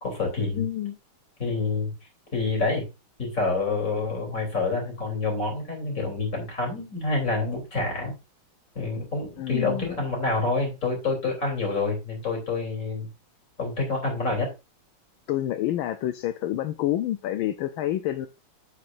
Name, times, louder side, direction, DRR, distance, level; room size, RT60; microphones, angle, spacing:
voice 1, 0.0-0.7 1.4-1.9 2.3-2.8 3.2-8.1 8.8-13.1 13.6-14.5, left 3 dB, 40° left, 3.7 m, -27 dB
voice 2, 0.6-1.0 9.4-10.0 15.3-18.3, left 13 dB, 80° left, 1.4 m, -28 dB
8.6 x 7.5 x 2.6 m
omnidirectional pair, 2.3 m